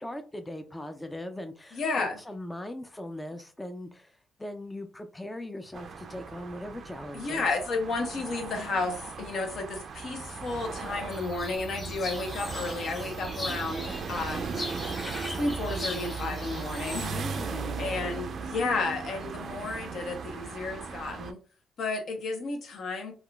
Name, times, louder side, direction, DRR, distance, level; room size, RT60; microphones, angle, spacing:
voice 1, 0.0-7.5 17.1-18.2, left 1 dB, 15° left, 0.4 m, -40 dB
voice 2, 1.7-2.2 7.1-14.6 15.2-17.2 17.8-21.4 21.8-23.1, left 3 dB, 65° left, 0.8 m, -32 dB
sound 1, 5.7-21.3, right 5 dB, 55° right, 0.4 m, -37 dB
sound 2, 11.1-17.1, left 2 dB, 35° left, 1.4 m, -40 dB
3.6 x 2.3 x 2.3 m
cardioid pair, 90°, 0 cm